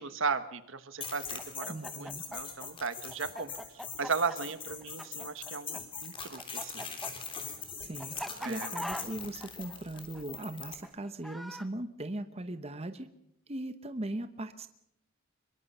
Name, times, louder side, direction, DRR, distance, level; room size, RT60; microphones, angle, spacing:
voice 1, 0.0-3.5 4.0-6.8 8.4-8.7, right 5 dB, 65° right, 12 dB, 1.3 m, -36 dB
sound 1, 1.0-10.8, left 5 dB, 25° left, 3.4 m, -42 dB
Chicken rooster, 1.4-5.8 6.0-11.7, equal, ahead, 1.0 m, -42 dB
voice 2, 1.7-2.2 7.8-8.1 8.4-13.1 13.5-14.7, right 1 dB, 30° right, 10 dB, 0.9 m, -39 dB
25.0 x 22.5 x 5.5 m, 0.79 s
head